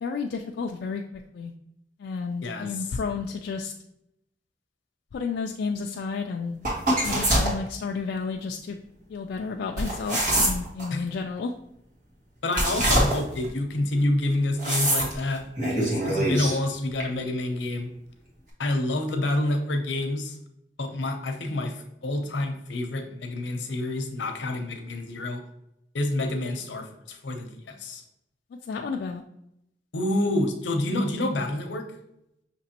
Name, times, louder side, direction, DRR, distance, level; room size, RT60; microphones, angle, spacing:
voice 1, 0.0-1.0 1.3-1.5 2.0-3.7 5.1-6.6 6.9-8.8 9.1-11.5 28.6-29.2, left 5 dB, 65° left, 2 dB, 0.3 m, -31 dB
sound 1, 6.6-7.6 9.8-10.9 12.5-13.5 14.6-15.2 15.6-16.6 17.0-17.1, right 1 dB, 50° right, 1.4 m, -24 dB
voice 2, 12.4-17.9 18.6-20.4 20.8-25.4 25.9-28.0 29.9-31.9, left 1 dB, 85° left, 5 dB, 0.7 m, -28 dB
6.0 x 2.9 x 2.9 m, 0.80 s
head